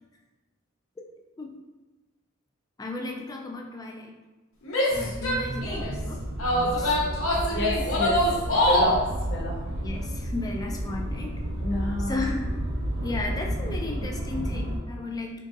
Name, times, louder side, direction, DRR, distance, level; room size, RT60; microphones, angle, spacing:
voice 1, 2.8-4.1 4.9-6.2 6.6-7.0 9.8-11.4 12.1-12.6 12.8-15.4, left 2 dB, 20° left, 1 dB, 0.4 m, -34 dB
Female speech woman speaking / Yell, 4.7-5.9 6.4-9.0, left 1 dB, 70° left, 0.9 m, -24 dB
sound 1, 4.9-14.8, right 1 dB, 50° right, 0.7 m, -31 dB
voice 2, 7.5-8.3 8.6-9.7 11.6-12.2, left 1 dB, 55° left, 1 dB, 0.7 m, -29 dB
3.9 x 3.6 x 2.4 m, 1.2 s
head